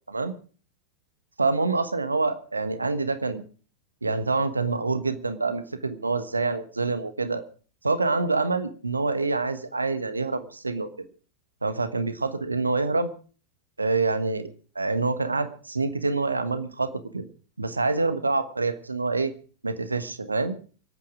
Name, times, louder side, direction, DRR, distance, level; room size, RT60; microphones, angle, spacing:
voice 1, 1.4-3.4 4.0-7.4 7.8-10.9 11.6-13.1 13.8-14.5 14.7-17.3 17.6-19.3 19.6-20.6, right 3 dB, 80° right, 12 dB, 1.2 m, -26 dB
25.0 x 8.8 x 5.0 m, 0.40 s
figure-of-eight pair, 90°, 0 cm